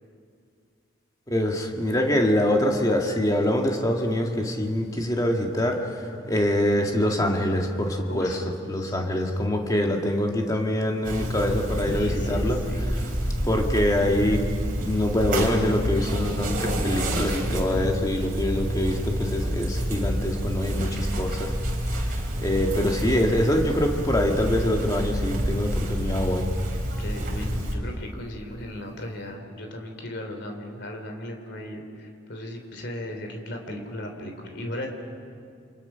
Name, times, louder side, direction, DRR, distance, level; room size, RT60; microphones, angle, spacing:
voice 1, 1.3-5.8 6.3-8.3 8.7-12.6 13.4-14.4 14.8-21.5 21.9-22.0 22.4-26.5, left 1 dB, 15° left, 1 dB, 2.0 m, -24 dB
voice 2, 6.1-6.5 8.1-8.5 8.8-9.3 11.9-12.9 16.6-17.2 27.0-34.9, left 1 dB, 55° left, 4 dB, 3.2 m, -37 dB
sound 1, 11.0-27.8, equal, 40° right, 3.7 m, -28 dB
28.5 x 26.0 x 5.8 m, 2.3 s
head